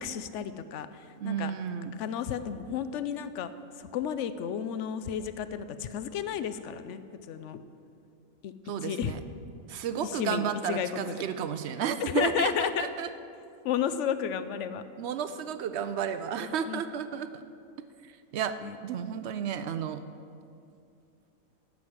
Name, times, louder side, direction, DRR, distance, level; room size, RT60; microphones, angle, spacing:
voice 1, 0.0-1.5 2.0-3.5 3.8-7.0 7.3-7.6 8.4-8.5 8.8-9.2 10.0-11.3 12.0-12.9 13.6-14.8 16.4-16.8 18.6-18.8, left 9 dB, 65° left, 12 dB, 0.8 m, -32 dB
voice 2, 1.2-1.9 8.6-9.2 9.7-13.1 15.0-17.4 18.0-18.5 18.8-20.0, right 8 dB, 65° right, 10 dB, 0.7 m, -32 dB
12.0 x 6.3 x 7.5 m, 2.5 s
omnidirectional pair, 1.5 m